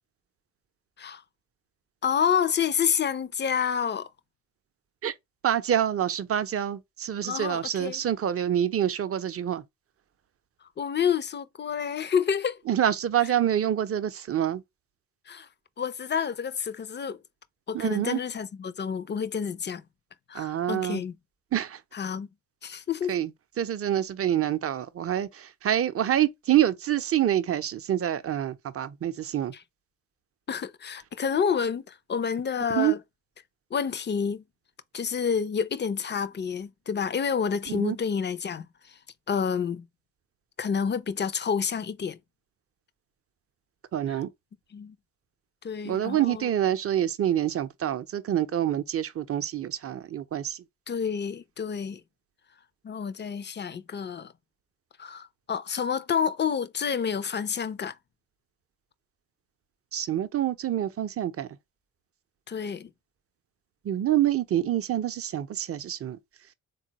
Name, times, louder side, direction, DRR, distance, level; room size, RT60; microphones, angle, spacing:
voice 1, 2.0-4.1 7.2-8.0 10.8-12.6 13.2-13.3 15.3-15.5 15.8-17.2 17.7-19.8 20.3-21.2 21.9-22.3 22.6-23.1 29.5-29.6 30.5-33.0 33.7-34.4 34.9-39.0 39.3-39.9 40.6-42.2 44.1-44.2 44.7-45.0 45.6-46.5 50.9-52.0 52.8-54.3 55.0-58.0 62.5-62.9, left 7 dB, 30° left, 0.5 m, -29 dB
voice 2, 5.4-9.6 12.7-14.6 17.7-18.2 20.3-21.0 21.5-21.8 23.1-23.3 23.6-29.5 32.7-32.9 37.7-38.0 43.9-44.3 45.8-50.6 59.9-61.5 63.8-66.2, right 11 dB, 35° right, 0.6 m, -26 dB
3.7 x 2.3 x 2.8 m
hypercardioid pair, 55°, 39 cm